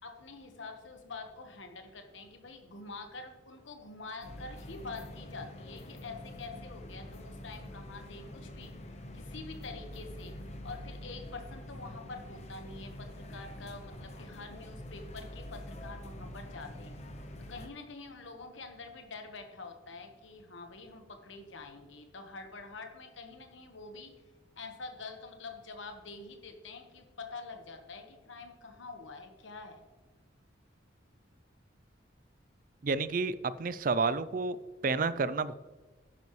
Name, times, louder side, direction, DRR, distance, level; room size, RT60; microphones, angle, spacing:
voice 1, 0.0-10.4 10.6-17.1 17.4-24.1 24.6-29.8, left 3 dB, 70° left, 5 dB, 1.2 m, -46 dB
sound 1, 4.2-17.7, left 1 dB, 35° left, 0.9 m, -46 dB
voice 2, 32.8-34.6 34.8-35.5, right 4 dB, 45° right, 15 dB, 0.4 m, -30 dB
10.5 x 9.5 x 3.1 m, 1.3 s
head